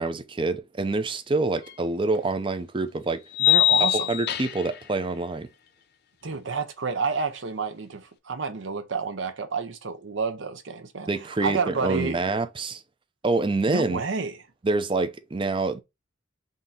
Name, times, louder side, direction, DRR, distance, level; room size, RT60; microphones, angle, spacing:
voice 1, 0.0-3.2 3.8-5.5 11.1-12.8 13.2-14.0 14.6-15.8, right 3 dB, 25° right, 0.5 m, -26 dB
sound 1, 1.7-1.8 3.3-4.8, left 13 dB, 55° left, 0.5 m, -22 dB
voice 2, 3.4-4.1 6.2-11.1 11.4-12.2 13.7-14.3, right 4 dB, 70° right, 0.7 m, -29 dB
3.7 x 2.7 x 3.9 m
head